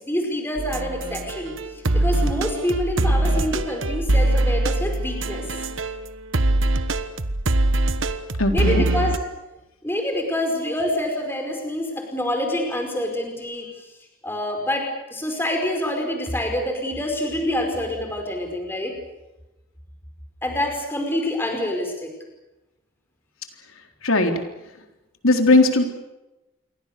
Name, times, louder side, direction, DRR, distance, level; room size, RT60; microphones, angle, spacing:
voice 1, 0.0-1.6 1.9-5.4 8.5-9.2 9.8-13.7 14.2-18.9 20.4-22.1, left 1 dB, 10° left, 3 dB, 5.0 m, -26 dB
sound 1, 0.6-6.0 6.3-9.2, right 2 dB, 70° right, 1.3 m, -22 dB
voice 2, 8.4-8.8 24.0-24.3 25.2-25.8, left 2 dB, 85° left, 4 dB, 3.7 m, -17 dB
28.0 x 23.5 x 6.8 m, 1.0 s
head